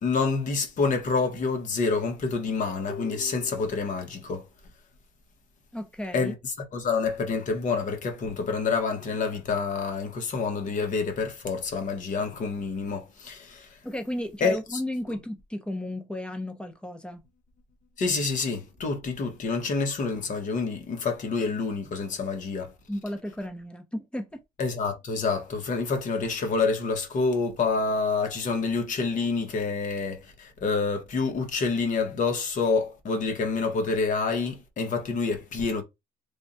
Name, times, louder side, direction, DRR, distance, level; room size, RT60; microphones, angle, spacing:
voice 1, 0.0-4.4 6.1-13.7 14.4-14.8 18.0-22.7 24.6-35.8, left 4 dB, 50° left, 1.3 m, -27 dB
voice 2, 5.7-6.3 13.8-17.2 22.9-24.4, left 1 dB, 5° left, 0.8 m, -34 dB
3.4 x 2.3 x 4.1 m
cardioid pair, 110°, 17 cm